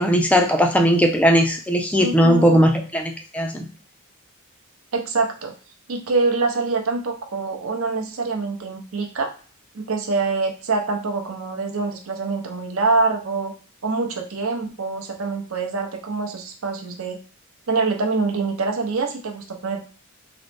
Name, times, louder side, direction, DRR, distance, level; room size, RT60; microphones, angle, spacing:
voice 1, 0.0-3.7, equal, 5° left, 4 dB, 0.4 m, -18 dB
voice 2, 2.0-2.7 4.9-5.5 5.9-9.3 9.7-13.5 13.8-17.2 17.7-19.8, right 3 dB, 75° right, 3 dB, 0.7 m, -25 dB
3.9 x 2.0 x 3.3 m, 0.40 s
head